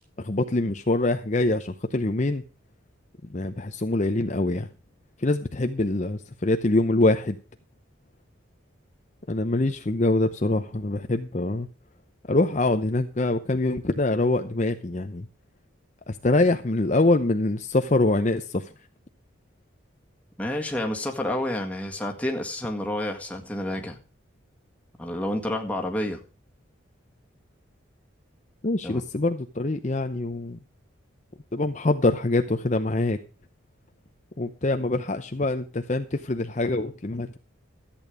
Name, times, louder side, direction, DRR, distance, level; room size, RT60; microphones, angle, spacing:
voice 1, 0.2-2.4 3.3-4.7 5.2-7.4 9.3-11.7 12.3-15.3 16.1-18.7 28.6-30.6 31.5-33.2 34.4-37.4, left 2 dB, 35° left, 7 dB, 0.7 m, -24 dB
voice 2, 20.4-24.0 25.0-26.2 28.8-29.0, left 1 dB, 5° left, 2 dB, 1.9 m, -29 dB
14.0 x 8.8 x 5.0 m, 0.35 s
head